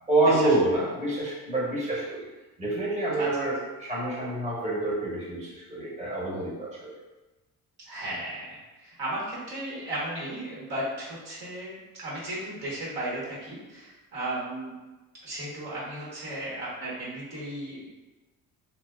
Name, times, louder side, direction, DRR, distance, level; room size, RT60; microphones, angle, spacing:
voice 1, 0.1-2.3 2.6-6.9, right 2 dB, 20° right, -6 dB, 0.9 m, -27 dB
voice 2, 7.9-14.7 15.2-17.9, right 1 dB, 75° right, -7 dB, 1.1 m, -35 dB
2.6 x 2.0 x 2.3 m, 1.2 s
cardioid pair, 70°, 38 cm